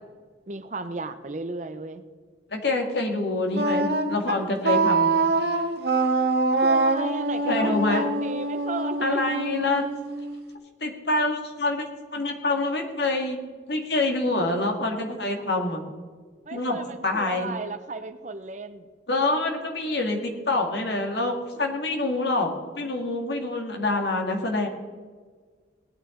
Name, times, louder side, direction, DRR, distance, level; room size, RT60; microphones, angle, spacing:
voice 1, 0.5-2.0 6.5-9.2 16.4-18.9, right 3 dB, 40° right, 10 dB, 0.7 m, -34 dB
voice 2, 2.5-5.2 7.4-8.1 9.0-9.8 10.8-11.8 12.1-13.4 13.7-15.8 16.5-16.8 17.0-17.5 19.1-22.5 22.8-24.7, left 2 dB, 60° left, 2 dB, 1.9 m, -26 dB
Wind instrument woodwind instrument, 3.5-10.5, right 3 dB, 55° right, 1.3 m, -24 dB
18.0 x 9.7 x 3.8 m, 1.5 s
head